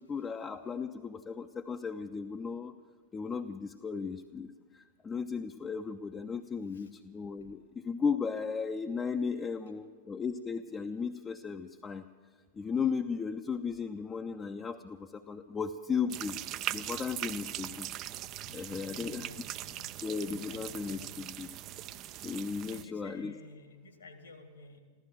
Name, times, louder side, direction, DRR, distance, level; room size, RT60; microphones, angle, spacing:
voice 1, 0.1-2.7 3.1-12.0 12.5-16.4 16.7-17.9 18.5-19.3 20.0-21.5 22.2-23.3, left 5 dB, 20° left, 5 dB, 0.5 m, -35 dB
sound 1, 16.1-22.8, right 13 dB, 35° right, 0.4 m, -40 dB
voice 2, 18.4-19.9 20.2-21.2 22.6-24.8, left 3 dB, 75° left, 7 dB, 1.9 m, -53 dB
15.0 x 13.0 x 7.5 m, 1.5 s
figure-of-eight pair, 90°, 0 cm